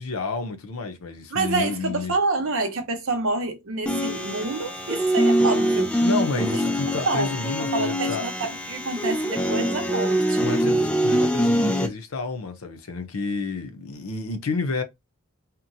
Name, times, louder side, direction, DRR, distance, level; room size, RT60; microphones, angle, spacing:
voice 1, 0.0-2.1 6.0-8.2 10.4-14.8, left 3 dB, 85° left, 0.6 m, -30 dB
voice 2, 1.3-5.9 6.3-6.6 7.1-10.6, right 3 dB, 70° right, 0.7 m, -28 dB
sound 1, 3.9-11.9, equal, 5° left, 0.3 m, -23 dB
2.9 x 2.1 x 2.6 m
head